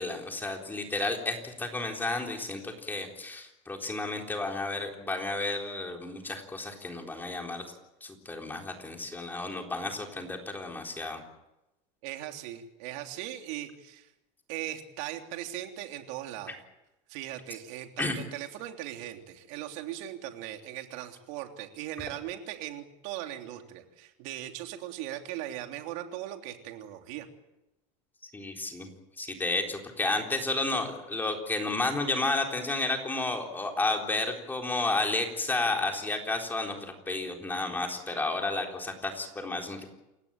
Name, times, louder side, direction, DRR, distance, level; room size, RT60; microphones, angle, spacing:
voice 1, 0.0-7.6 8.0-11.2 16.5-16.6 18.0-18.2 28.3-28.9 29.2-39.9, left 2 dB, 10° left, 2 dB, 4.0 m, -32 dB
voice 2, 12.0-14.1 14.5-16.6 17.1-27.3, right 13 dB, 65° right, 5 dB, 3.3 m, -39 dB
28.5 x 16.5 x 9.0 m, 0.94 s
supercardioid pair, 150°, 18 cm